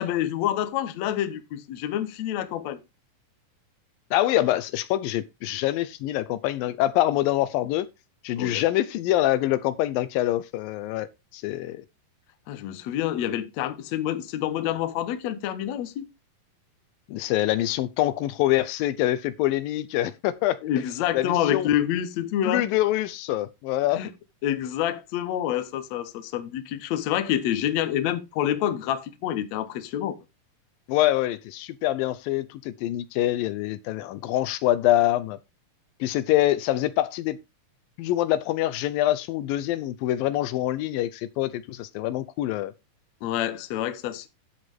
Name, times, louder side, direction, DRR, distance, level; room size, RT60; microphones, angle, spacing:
voice 1, 0.0-2.8 8.4-8.6 12.5-16.1 20.6-22.7 23.9-24.1 24.4-30.2 43.2-44.3, left 11 dB, 65° left, 1.9 m, -27 dB
voice 2, 4.1-7.9 8.2-11.1 11.3-11.8 17.1-20.6 21.1-21.7 22.5-24.0 30.9-35.4 36.0-37.4 38.0-42.7, left 14 dB, 80° left, 2.4 m, -25 dB
10.0 x 7.9 x 3.5 m
omnidirectional pair, 4.1 m